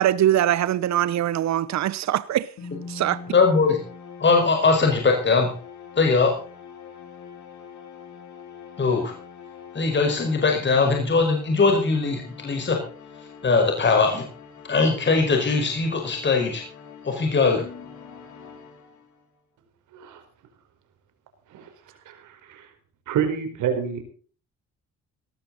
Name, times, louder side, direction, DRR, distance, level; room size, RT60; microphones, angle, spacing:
voice 1, 0.0-2.5 2.9-3.2, right 12 dB, 65° right, 0.9 m, -22 dB
sound 1, 2.6-19.3, left 4 dB, 70° left, 4.6 m, -42 dB
voice 2, 3.3-3.8 4.2-5.5 6.0-6.3 8.8-9.1 9.7-12.8 13.4-14.2 14.7-16.6 17.0-17.6, left 4 dB, 35° left, 5.0 m, -20 dB
voice 3, 22.1-22.7 23.1-24.0, right 8 dB, 80° right, 4.7 m, -28 dB
18.5 x 13.5 x 4.0 m
cardioid pair, 90°, 30 cm